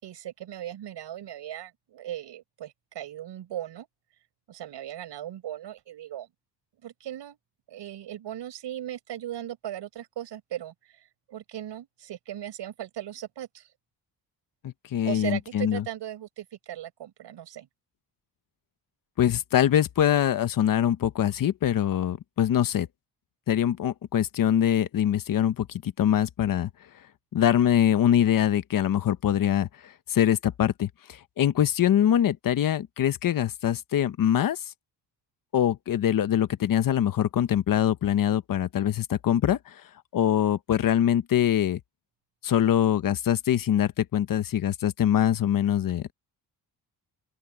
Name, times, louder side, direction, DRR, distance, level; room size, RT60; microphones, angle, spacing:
voice 1, 0.0-3.9 4.5-6.3 6.8-7.4 7.7-13.7 15.1-17.7, right 12 dB, 80° right, 5.4 m, -38 dB
voice 2, 14.6-15.8 19.2-22.9 23.5-26.7 27.3-29.7 30.1-34.6 35.5-39.6 40.1-41.8 42.4-46.1, left 10 dB, 50° left, 1.0 m, -23 dB
open air
wide cardioid pair, 160°, 42 cm